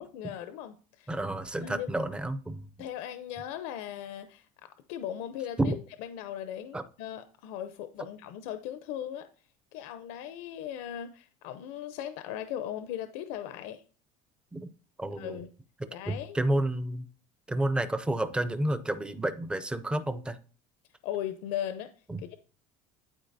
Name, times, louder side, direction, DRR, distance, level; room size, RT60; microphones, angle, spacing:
voice 1, 0.0-1.1 1.6-1.9 2.8-9.3 9.7-13.8 15.1-15.5 15.9-16.4 21.0-21.9 22.3-22.4, left 10 dB, 70° left, 10 dB, 0.6 m, -38 dB
voice 2, 1.1-2.6 5.6-5.7 6.7-6.8 14.5-14.7 15.0-15.4 16.1-17.0 17.5-20.4 22.1-22.2, right 1 dB, 5° right, 11 dB, 0.4 m, -30 dB
11.5 x 4.5 x 2.6 m, 0.40 s
cardioid pair, 170°, 16 cm